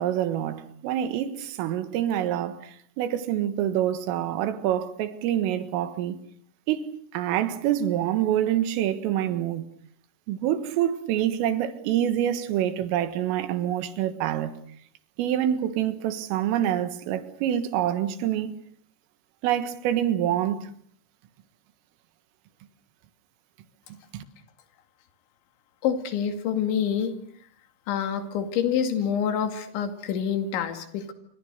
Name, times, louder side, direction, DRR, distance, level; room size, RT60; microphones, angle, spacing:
voice 1, 0.0-6.2 6.7-9.7 10.3-14.6 15.2-18.6 19.4-20.7 24.1-24.2, right 11 dB, 90° right, 4.2 m, -26 dB
voice 2, 25.8-27.1 27.9-31.1, left 8 dB, 70° left, 4.5 m, -27 dB
28.0 x 26.0 x 6.6 m
omnidirectional pair, 5.7 m